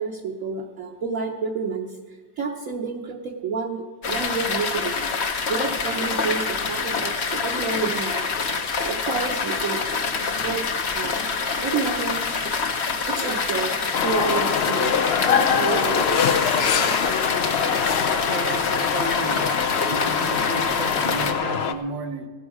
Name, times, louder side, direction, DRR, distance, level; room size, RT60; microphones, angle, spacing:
voice 1, 0.0-9.8 10.2-11.2 11.6-12.4 12.8-16.6, right 5 dB, 55° right, 1 dB, 1.1 m, -30 dB
sound 1, 4.0-21.3, left 4 dB, 45° left, 1.0 m, -26 dB
sound 2, 13.9-21.7, left 7 dB, 65° left, 0.6 m, -24 dB
voice 2, 18.1-19.5 19.8-22.3, right 4 dB, 90° right, 5 dB, 1.9 m, -33 dB
16.0 x 12.5 x 4.8 m, 1.4 s
omnidirectional pair, 2.0 m